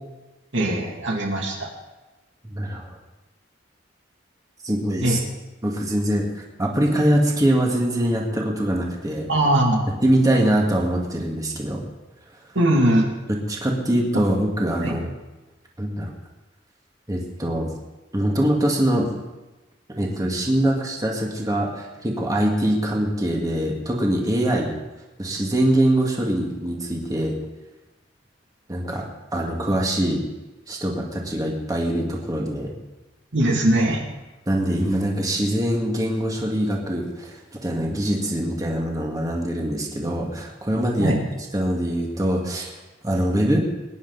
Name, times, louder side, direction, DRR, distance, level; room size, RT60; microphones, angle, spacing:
voice 1, 0.5-1.7 5.0-5.2 9.3-9.9 12.5-13.1 14.8-14.9 33.3-34.0 41.0-41.2, right 1 dB, 85° right, 0 dB, 2.5 m, -20 dB
voice 2, 2.5-3.0 4.6-5.2 5.6-9.3 10.0-11.8 13.3-15.1 15.8-16.1 17.1-17.7 18.1-19.1 20.0-24.7 25.2-27.4 28.7-29.1 29.3-30.2 30.7-32.7 34.5-41.1 41.5-42.8 43.0-43.6, right 1 dB, 20° right, -1 dB, 2.0 m, -23 dB
22.0 x 10.0 x 4.1 m, 1.1 s
head